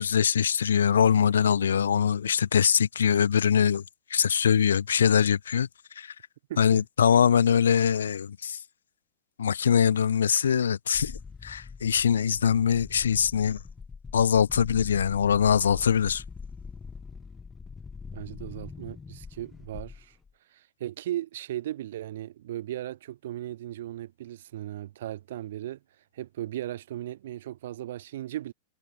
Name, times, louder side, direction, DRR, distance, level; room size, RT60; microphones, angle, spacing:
voice 1, 0.0-3.8 4.1-5.7 6.0-6.1 6.6-8.6 9.4-13.6 14.1-16.2, left 8 dB, 85° left, 2.6 m, -23 dB
voice 2, 6.5-6.8 18.1-20.2 20.5-25.8 26.1-28.5, right 13 dB, 70° right, 2.6 m, -37 dB
sound 1, 10.9-20.3, left 5 dB, 15° left, 2.5 m, -43 dB
hypercardioid pair, 110°, 0 cm